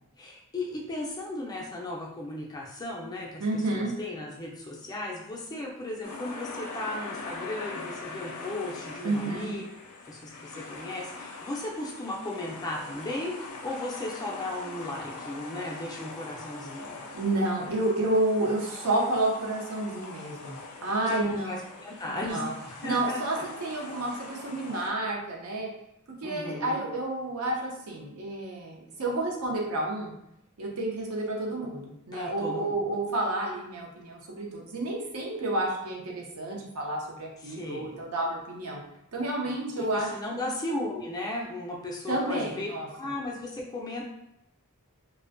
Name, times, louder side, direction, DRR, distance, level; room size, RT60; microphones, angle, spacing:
voice 1, 0.2-9.6 10.1-17.0 21.1-22.5 22.8-23.4 26.2-26.8 32.1-32.7 37.4-38.0 39.9-42.7 43.0-44.0, left 2 dB, 15° left, -3 dB, 0.3 m, -36 dB
voice 2, 3.4-3.9 9.0-9.5 17.1-21.5 22.1-22.5 22.8-25.7 26.2-30.1 30.6-38.8 39.1-40.4 42.1-42.9, right 2 dB, 75° right, -2 dB, 0.6 m, -30 dB
sound 1, 6.0-24.9, left 3 dB, 80° left, 0.4 m, -42 dB
2.5 x 2.1 x 2.5 m, 0.83 s
head